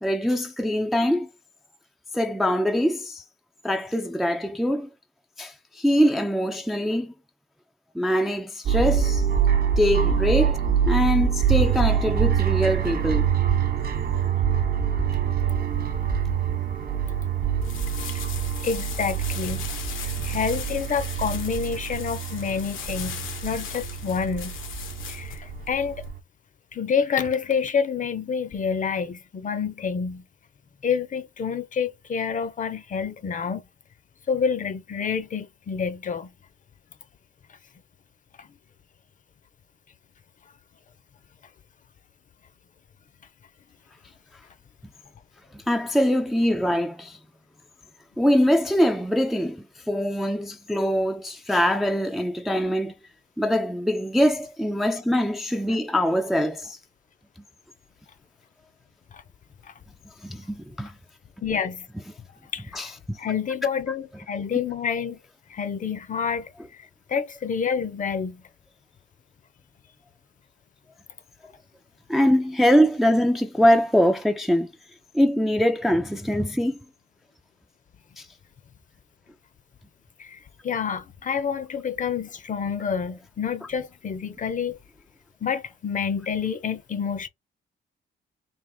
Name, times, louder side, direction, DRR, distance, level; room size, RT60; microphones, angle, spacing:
voice 1, 0.0-1.3 2.1-3.2 3.6-4.9 5.4-7.1 7.9-9.3 9.8-10.6 10.9-13.4 45.5-47.2 48.2-52.9 53.4-56.8 60.2-60.9 62.7-63.2 72.1-74.7 75.1-76.8 78.2-78.3, equal, ahead, 0.4 m, -23 dB
sound 1, 8.7-26.2, right 8 dB, 50° right, 0.8 m, -25 dB
sound 2, 17.6-26.1, left 8 dB, 85° left, 1.0 m, -38 dB
voice 2, 18.6-19.7 20.2-24.6 25.1-26.1 26.7-30.2 30.8-33.6 34.3-36.3 38.4-38.5 55.7-55.8 59.1-59.2 59.6-59.7 61.4-61.9 62.5-62.9 63.2-65.2 65.5-68.4 80.2-84.8 85.4-87.3, left 6 dB, 40° left, 0.7 m, -28 dB
3.5 x 2.4 x 3.7 m
cardioid pair, 90°, 20 cm